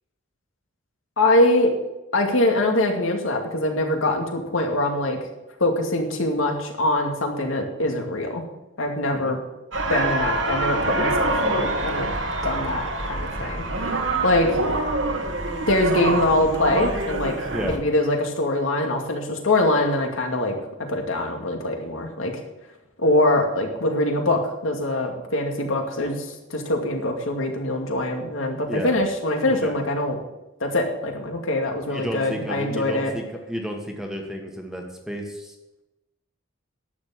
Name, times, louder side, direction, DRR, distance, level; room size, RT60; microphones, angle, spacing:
voice 1, 1.2-1.7 2.1-5.2 5.6-8.4 8.8-9.4 9.9-12.1 12.4-14.6 15.7-17.3 17.6-20.6 20.9-22.3 23.0-30.2 30.6-33.1, left 1 dB, 80° left, 3 dB, 2.3 m, -23 dB
sound 1, 9.7-17.8, right 2 dB, 65° right, 1.7 m, -25 dB
voice 2, 17.5-17.8 28.7-29.0 29.5-29.8 31.9-35.5, equal, 5° right, 2 dB, 1.4 m, -32 dB
11.0 x 7.3 x 7.7 m, 1.0 s
head